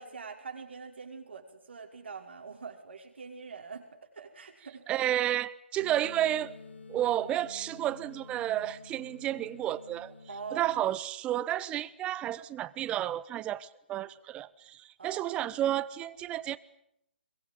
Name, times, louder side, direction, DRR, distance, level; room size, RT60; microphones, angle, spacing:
voice 1, 0.0-4.9 10.3-10.7 15.0-15.4, right 5 dB, 75° right, 5.5 m, -44 dB
voice 2, 4.9-6.6 6.9-10.1 10.5-16.6, right 12 dB, 15° right, 1.0 m, -31 dB
sound 1, 5.8-10.8, left 4 dB, 75° left, 3.7 m, -50 dB
23.0 x 21.0 x 9.5 m
hypercardioid pair, 140°, 6 cm